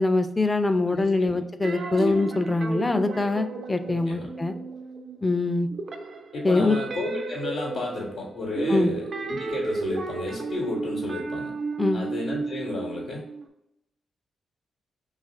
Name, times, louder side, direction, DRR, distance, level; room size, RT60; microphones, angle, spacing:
voice 1, 0.0-4.5 5.2-5.7 6.4-6.8 8.7-8.9 11.8-12.0, left 2 dB, 25° left, 9 dB, 0.4 m, -23 dB
voice 2, 0.9-1.4 2.0-2.2 4.1-4.3 6.3-11.5 11.9-13.2, left 2 dB, 70° left, -4 dB, 0.8 m, -32 dB
sound 1, 1.6-5.4 5.7-13.5, right 3 dB, 60° right, 0.4 m, -33 dB
2.9 x 2.4 x 4.1 m, 0.84 s
hypercardioid pair, 40°, 0 cm